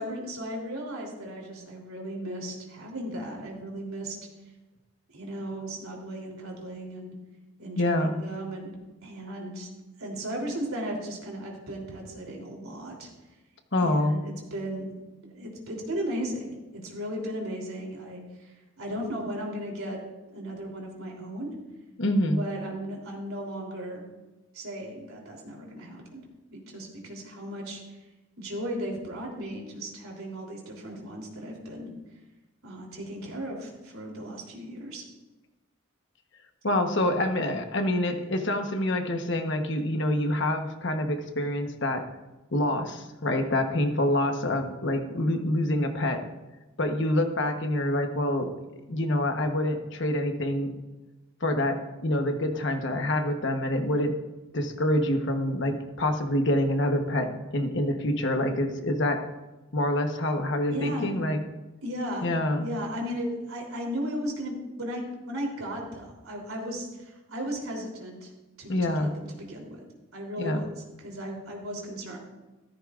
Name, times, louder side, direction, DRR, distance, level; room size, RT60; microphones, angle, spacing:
voice 1, 0.0-4.2 5.1-7.1 7.6-9.7 10.0-13.1 13.8-14.9 15.3-20.0 20.3-21.6 22.3-24.0 24.5-26.2 26.5-28.0 28.4-31.9 32.6-35.0 60.7-61.2 61.8-62.3 62.6-68.3 68.6-69.8 70.1-70.6 71.0-72.2, equal, 75° right, 0 dB, 3.4 m, -36 dB
voice 2, 7.8-8.2 13.7-14.2 22.0-22.4 36.6-42.0 42.5-46.2 46.8-48.5 48.9-50.7 51.4-54.2 54.5-59.2 59.7-61.4 62.2-62.7 68.7-69.1 70.4-70.6, left 1 dB, 55° left, 5 dB, 1.1 m, -26 dB
14.0 x 14.0 x 2.5 m, 1.1 s
head